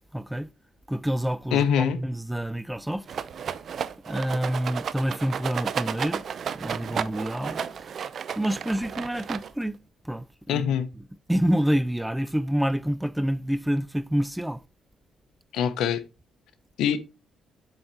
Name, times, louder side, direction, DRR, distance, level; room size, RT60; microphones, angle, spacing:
voice 1, 0.1-0.5 0.9-3.1 4.1-6.2 6.5-7.9 8.3-9.8 10.0-10.6 11.3-14.6, equal, 5° right, 0.4 m, -27 dB
voice 2, 1.5-2.0 10.5-10.9 15.5-16.0 16.8-17.0, left 8 dB, 85° left, 0.8 m, -23 dB
Rattle, 3.1-9.8, right 7 dB, 55° right, 0.5 m, -33 dB
7.9 x 4.0 x 4.4 m
cardioid pair, 90°, 0 cm